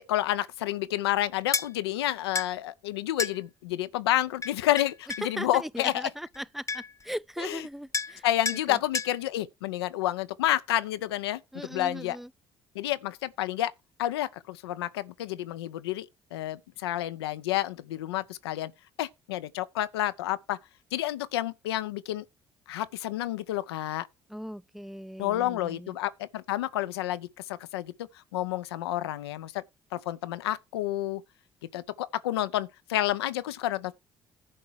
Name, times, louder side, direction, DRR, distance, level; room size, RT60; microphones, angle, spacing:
voice 1, 0.1-6.1 7.4-7.6 8.2-11.4 11.7-12.2 12.7-13.7 14.0-18.7 19.0-20.6 20.9-22.2 22.7-24.1 25.2-29.6 29.9-31.2 31.7-33.9, left 14 dB, 80° left, 0.6 m, -30 dB
sound 1, 1.5-1.7 2.3-2.5 3.2-3.4 4.4-5.3 6.3-6.4 6.7-7.0 7.9-8.2 8.4-8.6 8.9-9.1, left 4 dB, 25° left, 0.9 m, -31 dB
voice 2, 5.2-8.2 8.5-8.8 11.5-12.3 24.3-25.9, equal, ahead, 0.5 m, -38 dB
11.0 x 4.6 x 6.4 m
hypercardioid pair, 50°, 13 cm